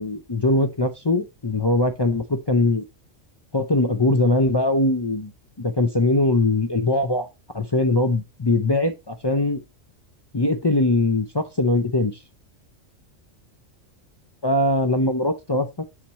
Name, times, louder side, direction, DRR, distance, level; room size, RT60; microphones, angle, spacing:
voice 1, 0.0-2.8 3.5-5.3 5.6-7.3 7.5-9.6 10.3-12.2 14.4-15.7, left 2 dB, 35° left, 0.4 m, -21 dB
7.3 x 6.6 x 3.0 m
omnidirectional pair, 1.3 m